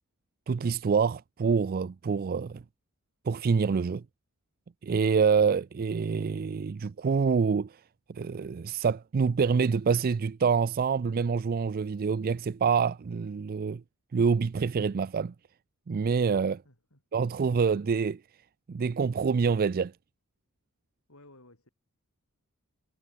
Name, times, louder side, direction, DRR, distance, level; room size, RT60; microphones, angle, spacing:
voice 1, 0.5-2.6 3.3-4.0 4.8-7.8 8.1-13.8 14.1-15.3 15.9-16.6 17.1-18.2 18.7-19.9, right 5 dB, 40° right, 0.4 m, -26 dB
voice 2, 16.6-17.2 21.1-21.7, left 2 dB, 65° left, 6.7 m, -57 dB
head